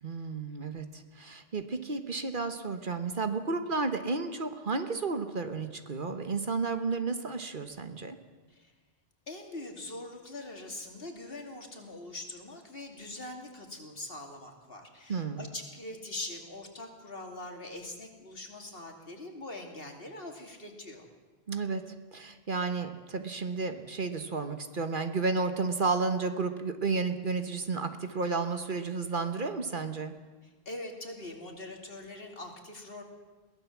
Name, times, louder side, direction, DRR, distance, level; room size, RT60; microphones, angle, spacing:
voice 1, 0.0-8.2 15.1-15.4 21.5-21.8 22.1-30.1, right 4 dB, 55° right, 8 dB, 1.4 m, -32 dB
voice 2, 9.3-21.1 30.4-33.0, left 2 dB, 65° left, 2 dB, 3.0 m, -43 dB
22.0 x 16.5 x 7.4 m, 1.3 s
omnidirectional pair, 1.1 m